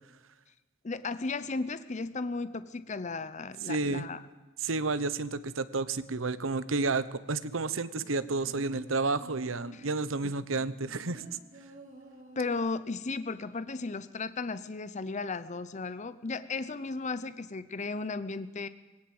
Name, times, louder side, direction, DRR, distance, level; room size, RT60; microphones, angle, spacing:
voice 1, 0.8-4.2 9.7-9.9 10.2-10.3 12.4-18.7, left 3 dB, 35° left, 13 dB, 0.6 m, -35 dB
voice 2, 3.7-4.0 4.6-11.2, right 3 dB, 85° right, 14 dB, 1.0 m, -31 dB
sound 1, 8.0-9.9 10.5-12.9 13.2-13.3, right 1 dB, 40° right, 5.3 m, -51 dB
20.5 x 17.5 x 7.8 m, 1.2 s
head